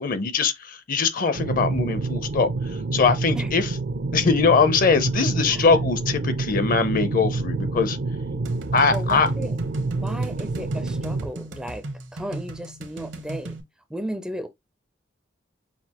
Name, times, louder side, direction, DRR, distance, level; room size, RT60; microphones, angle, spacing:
voice 1, 0.0-2.5 2.9-3.7 4.1-8.0 8.7-9.3, left 4 dB, 50° left, 0.6 m, -21 dB
sound 1, 1.3-11.3, right 3 dB, 60° right, 0.5 m, -28 dB
sound 2, 8.4-13.6, right 1 dB, 75° right, 1.0 m, -37 dB
voice 2, 8.9-9.6 9.9-11.9 12.1-13.6 13.9-14.5, right 1 dB, 5° right, 0.4 m, -34 dB
5.8 x 2.4 x 2.9 m
head